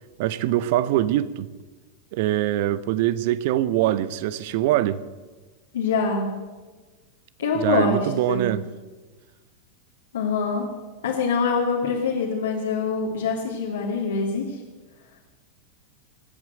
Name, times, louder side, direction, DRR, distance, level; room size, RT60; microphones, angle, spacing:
voice 1, 0.2-1.5 2.1-5.0 7.6-8.6, right 13 dB, 50° right, 0.8 m, -23 dB
voice 2, 5.7-6.3 7.4-8.5 10.1-10.7 11.0-14.6, left 4 dB, 65° left, 2.4 m, -24 dB
20.5 x 8.9 x 7.8 m
figure-of-eight pair, 90°, 0 cm